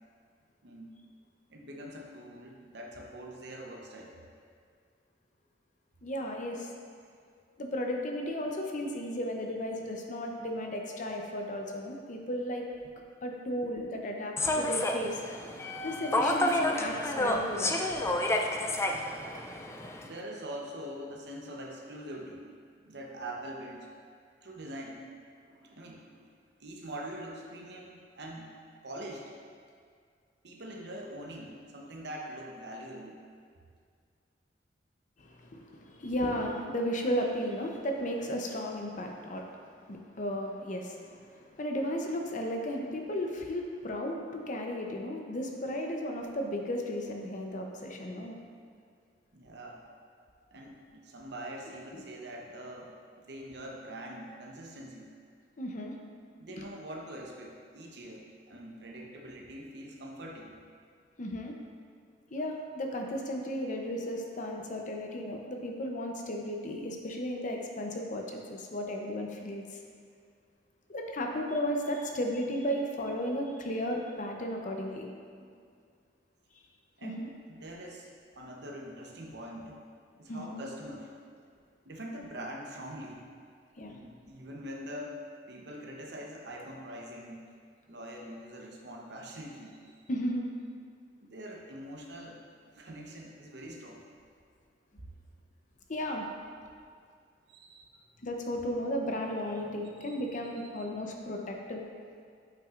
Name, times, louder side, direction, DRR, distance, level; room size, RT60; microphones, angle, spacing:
voice 1, 1.5-4.1 20.0-22.5 22.8-23.9 24.4-25.1 25.5-26.2 26.6-28.5 28.8-29.3 30.4-33.2 49.3-49.8 50.5-55.1 56.4-60.5 77.0-78.1 78.4-79.8 80.2-81.1 81.8-83.3 83.8-87.4 87.9-89.9 91.2-94.0 97.5-98.0 100.0-100.2 100.8-100.9, right 1 dB, 65° right, 0 dB, 0.9 m, -44 dB
voice 2, 6.0-6.7 7.6-12.7 13.2-15.2 15.8-17.7 35.2-39.5 39.9-48.4 51.9-52.0 55.6-55.9 56.6-56.7 61.2-61.5 62.3-69.8 70.9-75.1 77.0-77.3 80.3-80.6 83.8-83.9 90.1-90.5 95.9-96.3 98.2-101.8, equal, 45° left, 2 dB, 0.7 m, -34 dB
Human voice / Subway metro underground, 14.4-20.1, left 1 dB, 15° left, 0.3 m, -30 dB
8.3 x 5.8 x 2.5 m, 2.2 s
head